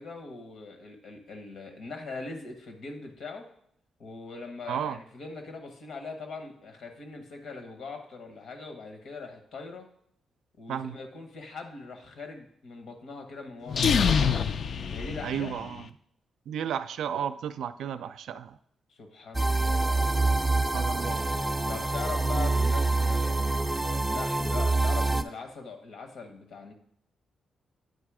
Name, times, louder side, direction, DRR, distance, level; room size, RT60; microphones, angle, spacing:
voice 1, 0.0-3.5 4.0-9.9 10.6-14.3 14.9-15.5 18.9-19.9 21.7-26.7, left 4 dB, 75° left, 1.2 m, -41 dB
voice 2, 4.7-5.0 10.7-11.0 15.2-15.9 16.5-18.6 20.5-21.4, right 8 dB, 85° right, 0.3 m, -33 dB
sound 1, 13.7-15.8, left 6 dB, 60° left, 0.3 m, -26 dB
sound 2, 19.3-25.2, right 2 dB, 10° right, 0.4 m, -26 dB
9.3 x 3.2 x 4.8 m
cardioid pair, 95°, 0 cm